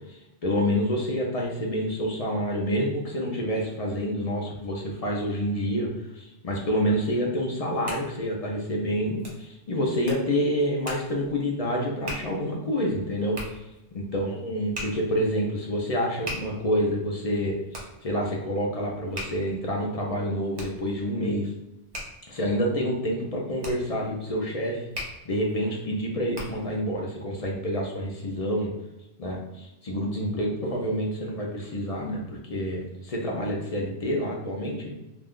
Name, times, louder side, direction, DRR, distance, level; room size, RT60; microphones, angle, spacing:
voice 1, 0.1-13.4 13.9-21.5 22.3-24.8 25.3-28.7 29.2-34.9, equal, 45° left, -1 dB, 0.5 m, -28 dB
Hands, 7.6-26.8, equal, 25° right, 0.7 m, -42 dB
2.5 x 2.3 x 3.5 m, 0.97 s
omnidirectional pair, 1.1 m